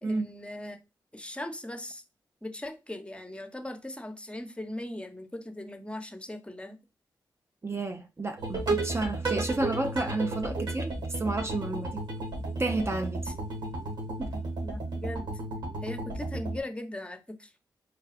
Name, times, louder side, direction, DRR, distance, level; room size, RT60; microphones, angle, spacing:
voice 1, 0.0-0.8 1.1-2.0 2.4-6.8 13.2-13.3 14.6-15.3 15.8-17.5, left 1 dB, 15° left, 0.9 m, -39 dB
voice 2, 7.6-12.0 12.6-13.3 14.2-14.4, right 2 dB, 30° right, 0.6 m, -31 dB
sound 1, 8.4-16.6, right 2 dB, 60° right, 2.8 m, -33 dB
4.8 x 2.3 x 4.9 m
cardioid pair, 55°, 8 cm